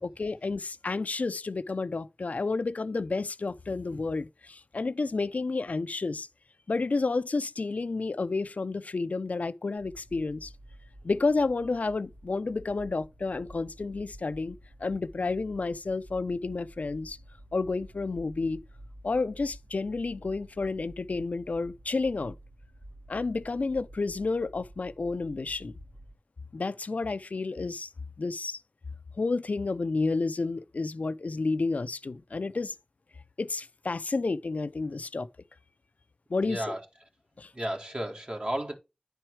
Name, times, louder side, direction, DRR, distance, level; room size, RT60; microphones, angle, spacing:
voice 1, 0.0-6.3 6.7-10.5 11.0-17.2 17.5-18.6 19.0-22.4 23.1-25.7 26.5-27.9 28.2-28.6 29.2-32.8 33.4-35.3 36.3-36.7 37.4-37.5, left 3 dB, 75° left, 0.5 m, -30 dB
sound 1, 9.8-26.1, right 1 dB, 80° right, 3.2 m, -50 dB
voice 2, 36.4-36.8 37.5-38.8, right 1 dB, 45° right, 1.9 m, -33 dB
9.9 x 4.5 x 4.7 m
wide cardioid pair, 40°, 3 cm